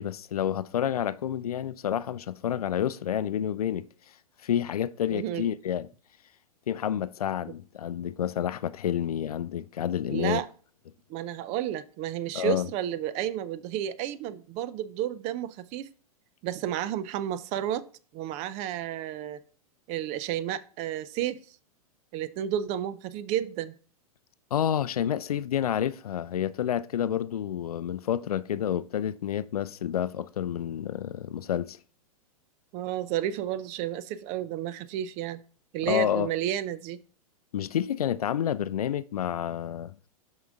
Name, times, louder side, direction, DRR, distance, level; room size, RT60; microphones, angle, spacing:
voice 1, 0.0-3.8 4.4-5.9 6.7-10.4 12.3-12.7 24.5-31.8 35.9-36.3 37.5-39.9, left 10 dB, 75° left, 0.4 m, -29 dB
voice 2, 5.1-5.4 10.1-10.5 11.1-15.9 16.4-17.8 18.1-19.4 19.9-21.4 22.1-23.7 32.7-35.4 35.7-37.0, right 11 dB, 35° right, 0.5 m, -31 dB
5.9 x 5.4 x 3.6 m
hypercardioid pair, 105°, 19 cm